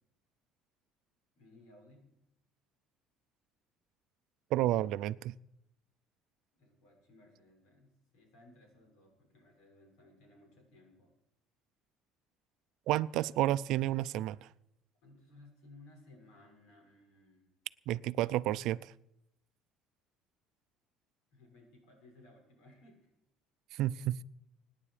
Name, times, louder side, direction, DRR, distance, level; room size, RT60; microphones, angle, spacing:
voice 1, 1.3-2.1 4.6-4.7 6.5-11.1 13.1-13.3 15.0-17.5 21.3-23.1, left 2 dB, 80° left, 1 dB, 6.7 m, -60 dB
voice 2, 4.5-5.3 12.9-14.4 17.9-18.9 23.7-24.2, right 14 dB, 65° right, 16 dB, 0.5 m, -31 dB
25.0 x 10.0 x 5.0 m, 0.82 s
cardioid pair, 150°, 0 cm